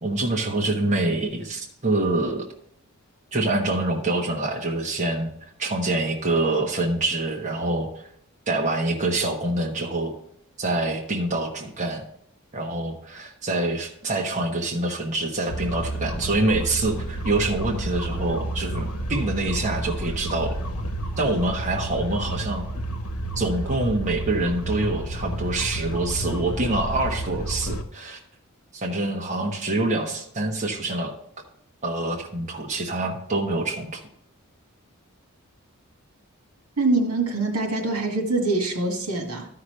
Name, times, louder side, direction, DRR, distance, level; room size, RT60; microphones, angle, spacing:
voice 1, 0.0-2.5 3.3-7.9 8.5-10.2 10.6-12.0 12.5-20.5 21.2-22.6 23.4-28.2 28.7-31.1 31.8-34.0, right 2 dB, 35° right, 0 dB, 1.1 m, -26 dB
sound 1, 15.5-27.8, right 1 dB, 80° left, 1.0 m, -30 dB
voice 2, 36.8-39.5, right 2 dB, 85° right, 2 dB, 2.0 m, -24 dB
13.0 x 5.9 x 3.3 m, 0.72 s
head